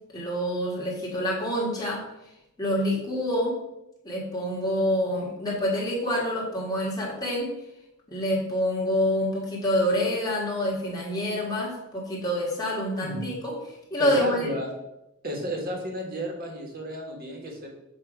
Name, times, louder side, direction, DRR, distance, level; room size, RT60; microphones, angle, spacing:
voice 1, 0.1-2.0 2.6-3.6 4.0-7.5 8.1-13.5 13.9-14.5, left 1 dB, 20° left, -5 dB, 1.7 m, -27 dB
voice 2, 13.0-13.3 14.0-14.7 15.2-17.7, equal, 45° right, 0 dB, 1.3 m, -33 dB
7.2 x 2.7 x 5.0 m, 0.89 s
head